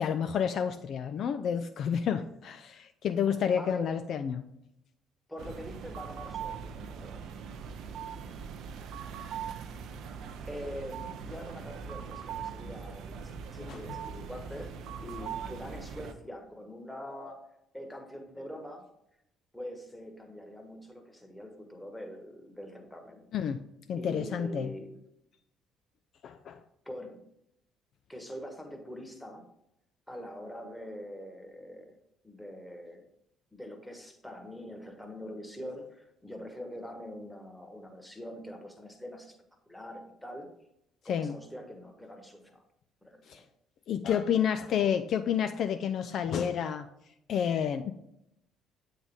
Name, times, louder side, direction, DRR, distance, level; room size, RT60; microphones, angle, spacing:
voice 1, 0.0-4.4 13.7-13.8 23.3-23.6 23.9-24.7 26.2-26.6 41.1-41.4 43.3-43.4 43.9-46.9 47.3-47.9, left 8 dB, 50° left, 9 dB, 0.3 m, -30 dB
voice 2, 3.3-4.0 5.3-7.3 10.5-14.7 15.0-18.9 19.5-23.3 24.0-24.9 26.8-27.2 28.1-29.5 30.1-32.0 32.2-33.0 33.5-39.4 39.7-40.5 41.0-42.6 43.0-43.4, equal, 5° left, 4 dB, 1.2 m, -44 dB
sound 1, 5.4-16.1, right 7 dB, 55° right, 0.5 m, -41 dB
8.1 x 3.9 x 3.5 m, 0.79 s
figure-of-eight pair, 50°, 0 cm